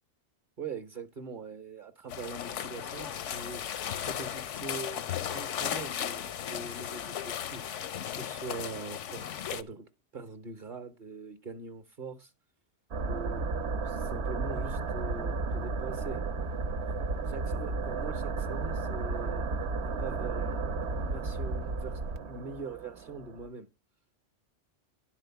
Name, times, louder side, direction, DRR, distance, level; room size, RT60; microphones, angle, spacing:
voice 1, 0.6-7.9 8.2-12.3 13.0-16.6 17.3-19.4 19.8-23.7, right 4 dB, 50° right, 0.9 m, -43 dB
sound 1, 2.1-9.6, left 9 dB, 90° left, 1.0 m, -36 dB
sound 2, 12.9-23.5, right 3 dB, 70° right, 1.0 m, -33 dB
11.5 x 4.1 x 6.9 m
omnidirectional pair, 1.2 m